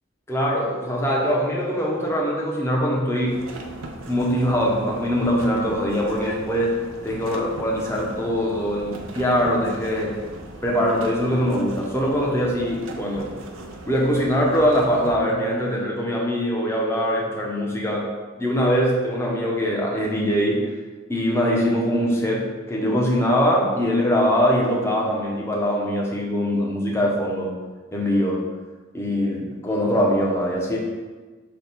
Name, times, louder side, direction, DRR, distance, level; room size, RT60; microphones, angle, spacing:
voice 1, 0.3-3.4 4.1-10.2 10.6-13.3 13.9-18.1 18.4-20.7 21.1-27.5 27.9-28.4 28.9-30.8, equal, 15° left, -3 dB, 0.7 m, -22 dB
sound 1, 3.2-15.2, right 2 dB, 85° right, 0.6 m, -39 dB
5.1 x 2.3 x 4.3 m, 1.3 s
head